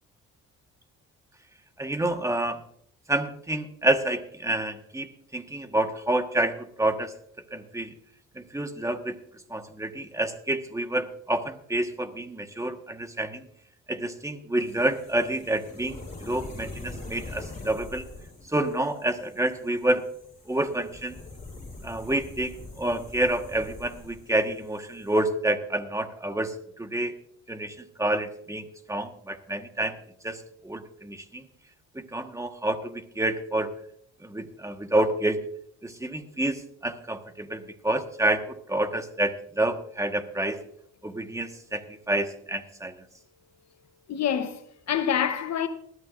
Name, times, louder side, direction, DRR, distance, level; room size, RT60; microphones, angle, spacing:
voice 1, 1.8-2.6 3.1-7.9 8.3-9.2 9.5-13.5 13.9-18.0 18.5-20.1 20.5-21.2 21.8-27.1 27.5-30.0 30.2-31.5 31.9-33.7 34.2-35.4 35.8-40.6 41.0-43.0, right 1 dB, 10° right, 1.4 m, -28 dB
sound 1, 14.6-25.2, left 3 dB, 25° left, 6.8 m, -44 dB
voice 2, 44.1-45.7, left 8 dB, 60° left, 1.1 m, -27 dB
19.5 x 13.0 x 2.6 m
cardioid pair, 90°, 30 cm